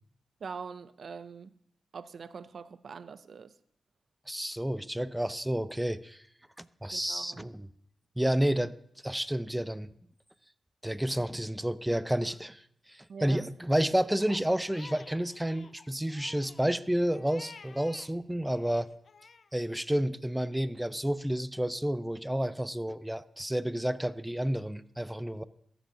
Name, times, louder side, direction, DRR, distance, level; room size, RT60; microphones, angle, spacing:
voice 1, 0.4-1.5 1.9-3.5 6.9-7.4 13.1-13.5, right 5 dB, 70° right, 0.4 m, -43 dB
voice 2, 4.3-6.2 6.6-7.7 8.2-8.7 9.0-9.9 10.8-18.9 19.5-25.4, right 1 dB, 10° right, 0.4 m, -30 dB
Crying sobbing, 14.2-18.1 18.5-19.5, left 5 dB, 65° left, 0.4 m, -52 dB
14.5 x 7.1 x 2.7 m
cardioid pair, 50°, 0 cm